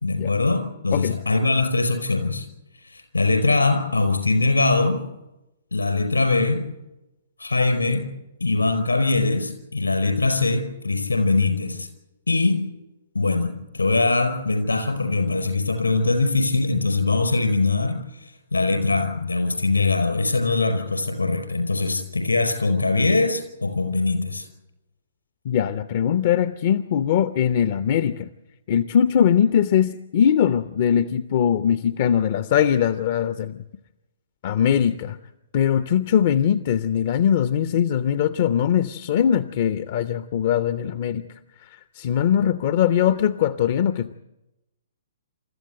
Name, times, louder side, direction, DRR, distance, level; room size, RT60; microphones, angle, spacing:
voice 1, 0.0-2.4 2.8-5.0 5.7-6.7 7.4-8.1 8.4-11.9 12.3-12.6 13.1-24.5, left 3 dB, 75° left, 7 dB, 5.0 m, -22 dB
voice 2, 25.4-28.3 28.7-33.6 34.4-35.2 35.5-41.3 41.7-44.1, left 9 dB, 40° left, 13 dB, 0.7 m, -21 dB
28.5 x 14.0 x 8.1 m, 0.96 s
figure-of-eight pair, 120°, 0 cm